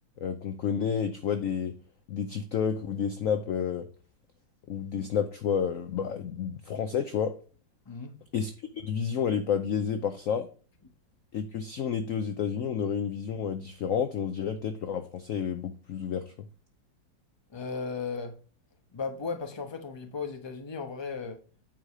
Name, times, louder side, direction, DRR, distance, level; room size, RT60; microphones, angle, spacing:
voice 1, 0.2-1.7 2.1-3.9 4.7-7.3 8.3-10.5 11.3-16.3, left 7 dB, 65° left, 0.8 m, -30 dB
voice 2, 17.5-18.3 18.9-21.4, left 5 dB, 20° left, 0.8 m, -35 dB
9.2 x 4.9 x 4.8 m
omnidirectional pair, 2.0 m